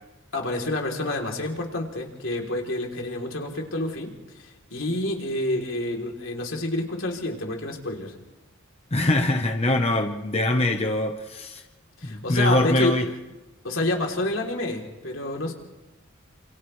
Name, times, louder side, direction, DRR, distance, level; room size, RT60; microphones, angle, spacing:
voice 1, 0.3-8.1 12.0-12.9 13.6-15.5, left 2 dB, 70° left, 0 dB, 3.4 m, -28 dB
voice 2, 8.9-11.6 12.0-13.1, left 1 dB, 30° left, 4 dB, 1.0 m, -23 dB
29.0 x 27.5 x 3.3 m, 1.0 s
head